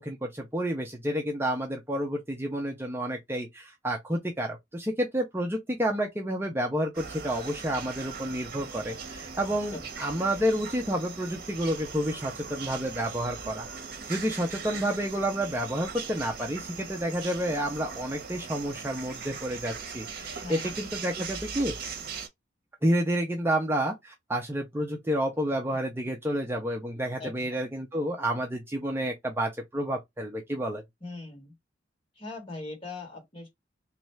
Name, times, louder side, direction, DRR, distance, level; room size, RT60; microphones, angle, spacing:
voice 1, 0.0-13.7 14.1-21.7 22.8-30.8, equal, 10° right, 0.6 m, -30 dB
sound 1, 6.9-22.3, right 5 dB, 55° right, 0.9 m, -40 dB
voice 2, 9.5-9.9 14.7-14.8 20.4-20.8 27.2-27.6 31.0-31.5 32.2-33.5, left 3 dB, 30° left, 1.8 m, -41 dB
3.1 x 2.5 x 4.3 m
head